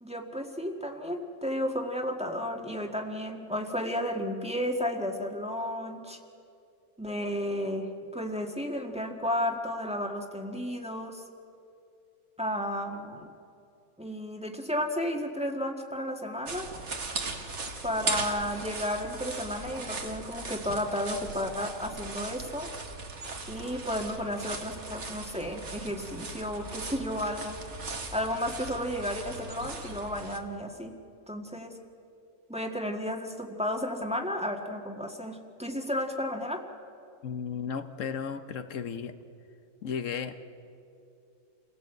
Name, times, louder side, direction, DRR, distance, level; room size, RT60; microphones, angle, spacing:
voice 1, 0.0-6.2 7.0-11.2 12.4-13.3 14.0-16.7 17.8-22.7 23.5-27.6 28.1-31.0 31.3-31.8 32.5-36.6, equal, 5° right, 2 dB, 1.6 m, -33 dB
sound 1, 16.5-30.4, right 3 dB, 65° right, 1.9 m, -38 dB
voice 2, 37.2-39.1 39.8-40.3, left 6 dB, 80° left, 9 dB, 1.3 m, -34 dB
28.5 x 17.0 x 8.0 m, 2.6 s
omnidirectional pair, 1.3 m